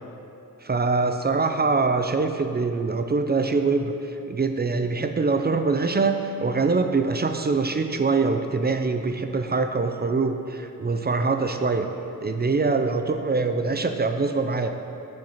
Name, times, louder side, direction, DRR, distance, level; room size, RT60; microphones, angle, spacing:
voice 1, 0.6-11.9 12.2-14.7, right 4 dB, 30° right, 6 dB, 0.4 m, -24 dB
6.2 x 4.5 x 5.8 m, 2.7 s
cardioid pair, 55°, 33 cm